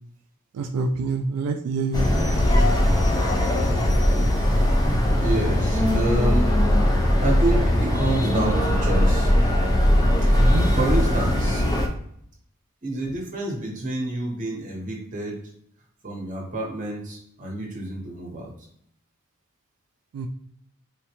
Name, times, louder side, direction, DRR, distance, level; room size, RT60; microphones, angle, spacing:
voice 1, 0.5-2.1 10.4-10.7 20.1-20.3, right 3 dB, 85° right, 8 dB, 0.3 m, -26 dB
sound 1, 1.9-11.9, left 1 dB, 15° left, 0.3 m, -20 dB
voice 2, 4.2-6.5 7.2-9.3 10.2-11.6 12.8-15.4 16.0-18.5, right 1 dB, 35° right, -1 dB, 0.8 m, -29 dB
3.5 x 2.2 x 2.8 m, 0.69 s
head